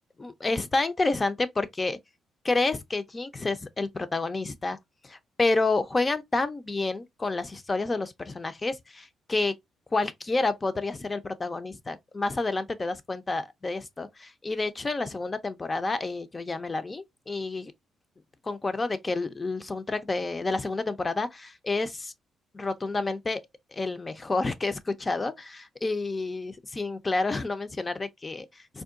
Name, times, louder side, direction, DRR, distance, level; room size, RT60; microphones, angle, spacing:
voice 1, 0.2-2.0 2.4-4.8 5.0-9.5 9.9-17.7 18.4-22.1 22.5-23.4 23.7-28.8, left 3 dB, 25° left, 0.4 m, -29 dB
3.6 x 2.2 x 2.3 m
cardioid pair, 90°, 0 cm